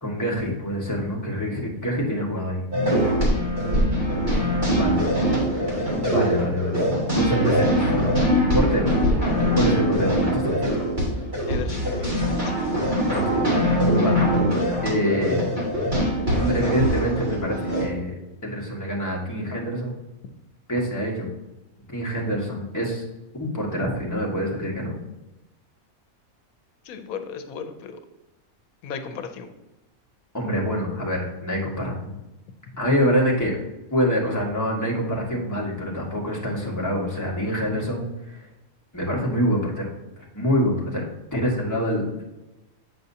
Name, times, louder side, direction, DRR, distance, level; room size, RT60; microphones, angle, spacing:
voice 1, 0.0-2.6 4.3-4.4 4.7-5.0 5.5-6.9 7.1-7.9 8.5-8.9 9.5-10.7 13.2-13.4 13.9-14.2 14.8-15.4 16.1-18.1 18.4-19.9 20.7-21.3 21.9-23.0 23.3-24.9 30.3-32.2 32.8-33.6 33.9-38.5 38.9-39.9 40.2-42.2, equal, 15° left, -3 dB, 1.4 m, -26 dB
sound 1, 2.7-17.8, equal, 35° right, 2.3 m, -22 dB
voice 2, 11.5-12.6 26.8-28.0 28.8-29.5, left 6 dB, 90° left, 8 dB, 1.1 m, -36 dB
7.7 x 5.8 x 2.7 m, 1.0 s
omnidirectional pair, 1.5 m